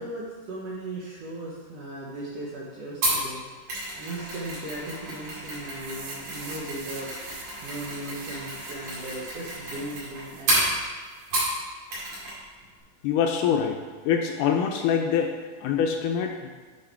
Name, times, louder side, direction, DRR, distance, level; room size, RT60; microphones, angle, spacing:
voice 1, 0.0-3.4 3.9-7.1 7.6-10.8, right 1 dB, 65° right, -5 dB, 1.6 m, -37 dB
Mechanisms, 3.0-11.6 11.9-12.4 12.6-12.8, right 1 dB, 50° right, 3.6 m, -31 dB
sound 1, 5.8-11.7, right 5 dB, 85° right, 2.8 m, -46 dB
voice 2, 13.0-13.8 14.1-15.4 15.6-16.5, left 7 dB, 80° left, 3 dB, 2.0 m, -24 dB
8.7 x 5.5 x 4.5 m, 1.4 s
omnidirectional pair, 4.0 m